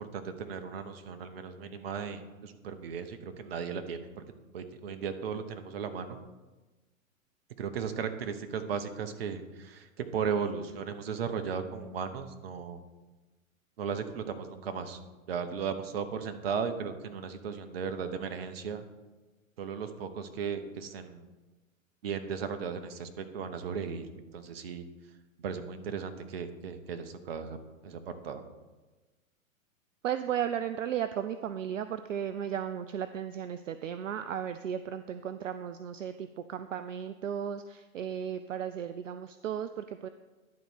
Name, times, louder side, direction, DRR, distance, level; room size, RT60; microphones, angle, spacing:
voice 1, 0.0-4.1 4.5-6.2 7.6-12.8 13.8-15.0 15.3-18.8 19.6-21.3 22.0-24.1 24.3-24.8 25.4-27.6 27.8-28.4, right 6 dB, 45° right, 9 dB, 0.9 m, -36 dB
voice 2, 30.0-40.1, right 9 dB, 65° right, 11 dB, 0.5 m, -35 dB
10.5 x 4.1 x 6.3 m, 1.2 s
figure-of-eight pair, 110°, 41 cm